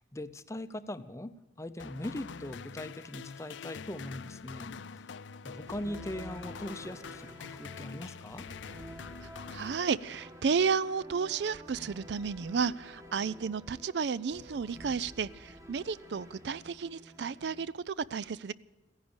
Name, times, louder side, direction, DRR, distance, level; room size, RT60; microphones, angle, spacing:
voice 1, 0.0-5.0 5.4-8.5, left 1 dB, 15° left, 12 dB, 0.6 m, -41 dB
sound 1, 1.8-10.4, left 5 dB, 75° left, 0.5 m, -45 dB
sound 2, 5.7-17.6, right 1 dB, 20° right, 1.4 m, -51 dB
voice 2, 9.5-18.5, right 5 dB, 65° right, 19 dB, 0.4 m, -32 dB
15.5 x 10.5 x 8.8 m, 1.1 s
head